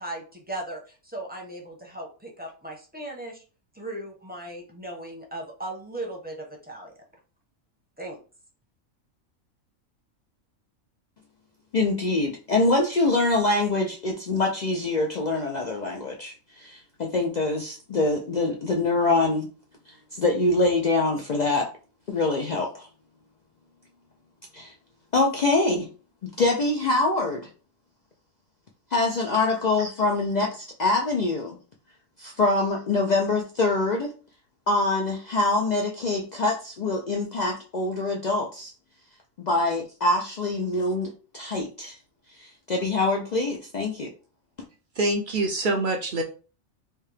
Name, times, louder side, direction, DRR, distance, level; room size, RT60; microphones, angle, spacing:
voice 1, 0.0-3.4 3.7-6.9 8.0-8.2, right 1 dB, 10° right, -1 dB, 0.6 m, -37 dB
voice 2, 11.7-19.5 19.9-21.7 22.1-22.9 24.5-24.7 25.1-25.9 26.2-27.5 28.9-31.6 32.2-34.1 34.7-38.7 39.4-42.0 42.3-44.1, left 2 dB, 90° left, 1 dB, 0.3 m, -24 dB
voice 3, 45.0-46.2, right 2 dB, 60° right, 4 dB, 0.5 m, -25 dB
3.4 x 2.8 x 3.3 m, 0.36 s
omnidirectional pair, 1.4 m